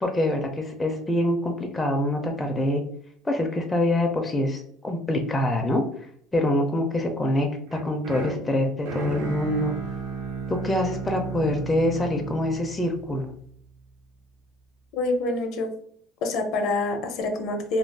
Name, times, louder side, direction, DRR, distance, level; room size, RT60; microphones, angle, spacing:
voice 1, 0.0-2.8 3.2-5.8 6.3-9.7 10.5-13.3, left 1 dB, 10° left, 3 dB, 0.4 m, -25 dB
sound 1, 7.7-13.8, right 4 dB, 75° right, 0.7 m, -34 dB
voice 2, 14.9-15.7 16.2-17.8, left 2 dB, 55° left, 5 dB, 0.5 m, -26 dB
2.4 x 2.2 x 3.3 m, 0.64 s
cardioid pair, 130°, 0 cm